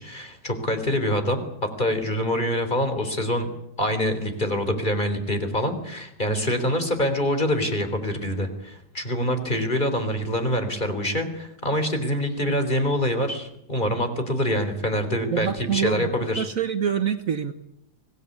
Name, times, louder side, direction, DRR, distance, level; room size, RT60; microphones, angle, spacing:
voice 1, 0.0-1.4 1.8-3.5 3.8-16.5, equal, 25° left, 7 dB, 3.9 m, -25 dB
voice 2, 15.3-16.1 16.4-17.5, right 8 dB, 55° right, 9 dB, 1.5 m, -25 dB
25.0 x 18.5 x 9.9 m, 0.80 s
omnidirectional pair, 1.8 m